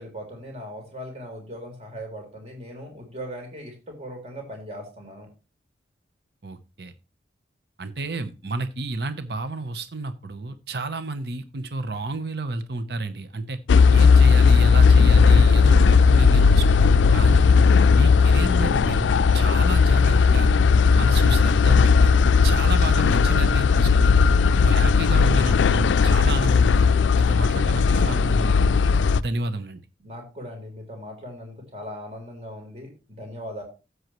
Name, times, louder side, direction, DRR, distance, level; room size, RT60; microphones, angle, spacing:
voice 1, 0.0-5.3 30.0-33.6, equal, 35° right, 2 dB, 3.8 m, -39 dB
voice 2, 6.4-6.9 7.8-13.6 13.9-17.5 17.9-20.5 20.9-22.1 22.4-24.1 24.5-28.7 29.2-29.8, right 2 dB, 60° right, 11 dB, 0.9 m, -31 dB
sound 1, 13.7-29.2, left 5 dB, 90° left, 0.4 m, -17 dB
13.0 x 8.0 x 3.1 m, 0.31 s
head